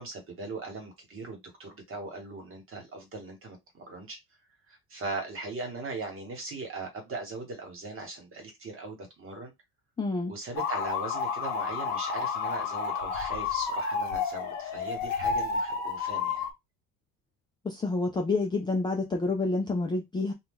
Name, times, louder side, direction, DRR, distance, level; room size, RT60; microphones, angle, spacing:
voice 1, 0.0-4.2 4.7-9.5 10.3-16.5, right 3 dB, 35° right, 1.3 m, -39 dB
voice 2, 10.0-10.3 17.6-20.3, left 3 dB, 15° left, 0.3 m, -28 dB
sound 1, 10.6-16.5, left 5 dB, 45° left, 1.1 m, -31 dB
2.6 x 2.3 x 3.6 m
cardioid pair, 150°, 39 cm